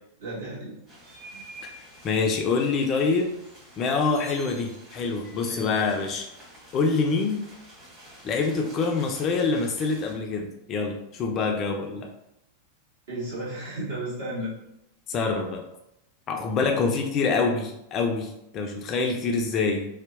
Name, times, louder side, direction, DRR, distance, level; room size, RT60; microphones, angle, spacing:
voice 1, 0.2-0.7 1.3-1.5 5.5-5.7 13.1-14.5, right 1 dB, 60° right, -9 dB, 1.4 m, -33 dB
sound 1, 0.9-10.1, right 1 dB, 20° right, 1.2 m, -48 dB
voice 2, 2.0-3.3 3.8-6.3 6.7-7.4 8.2-12.1 15.1-15.6 16.3-19.9, left 4 dB, 30° left, 3 dB, 0.3 m, -25 dB
2.7 x 2.1 x 2.5 m, 0.82 s
figure-of-eight pair, 90°, 0 cm